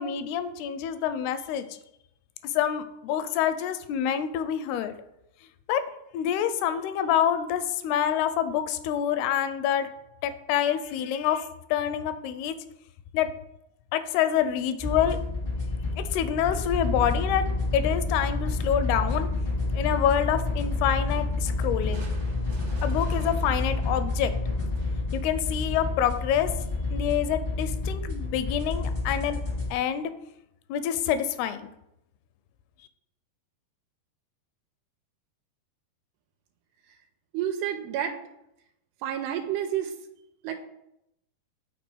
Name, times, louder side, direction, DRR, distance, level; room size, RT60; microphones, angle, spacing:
voice 1, 0.0-1.8 2.4-4.9 5.7-5.8 6.1-9.9 10.2-12.6 13.1-13.3 13.9-15.2 16.0-17.5 17.7-19.3 19.7-22.0 22.8-24.3 25.1-26.5 26.9-29.4 29.7-30.1 30.7-31.7, left 9 dB, 85° left, 10 dB, 2.4 m, -27 dB
sound 1, 14.8-29.7, left 2 dB, 60° left, 0.5 m, -29 dB
Crushing, 21.9-25.3, right 3 dB, 65° right, 1.5 m, -47 dB
voice 2, 37.3-38.2 39.0-39.9 40.4-40.5, right 10 dB, 85° right, 5 dB, 2.6 m, -29 dB
6.0 x 4.4 x 6.1 m, 0.82 s
omnidirectional pair, 4.6 m